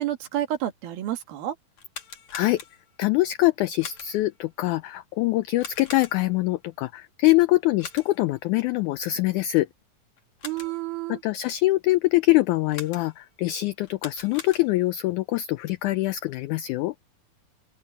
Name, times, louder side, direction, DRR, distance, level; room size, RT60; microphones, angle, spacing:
voice 1, 0.0-1.6 10.4-11.2, right 13 dB, 85° right, 3.5 m, -29 dB
sound 1, 1.7-3.0 3.8-4.4 5.6-6.5 7.8-8.4 10.2-10.9 12.7-13.3 13.8-15.0, left 6 dB, 50° left, 3.3 m, -42 dB
voice 2, 3.0-9.7 11.1-16.9, left 18 dB, 85° left, 1.7 m, -24 dB
open air
omnidirectional pair, 4.1 m